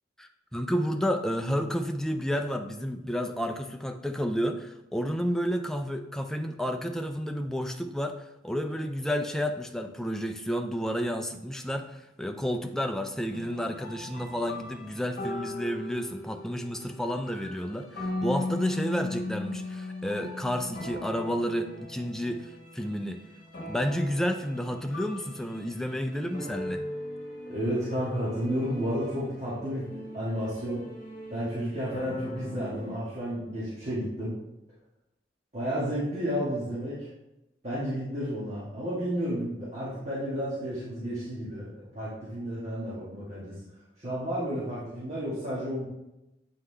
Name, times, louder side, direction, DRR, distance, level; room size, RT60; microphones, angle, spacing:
voice 1, 0.2-23.2 23.7-26.8, equal, 5° left, 5 dB, 0.3 m, -31 dB
sound 1, 13.3-33.0, left 2 dB, 50° left, 1.4 m, -39 dB
voice 2, 27.5-30.9 31.3-34.3 35.5-37.1 37.6-45.9, equal, 40° right, -10 dB, 1.6 m, -32 dB
8.0 x 3.7 x 3.3 m, 0.92 s
head